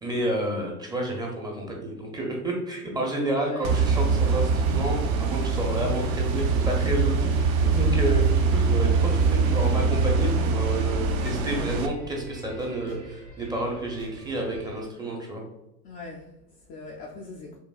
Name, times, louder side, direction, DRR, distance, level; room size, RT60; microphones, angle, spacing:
voice 1, 0.0-8.2 8.5-15.4, right 1 dB, 10° right, 0 dB, 0.6 m, -30 dB
voice 2, 3.4-3.8 7.9-8.3 15.8-17.6, left 3 dB, 30° left, -2 dB, 0.4 m, -42 dB
sound 1, 3.6-11.9, right 4 dB, 60° right, 0.7 m, -23 dB
sound 2, 5.3-14.8, right 2 dB, 80° right, 0.9 m, -44 dB
5.5 x 2.2 x 2.4 m, 0.91 s
hypercardioid pair, 95°, 49 cm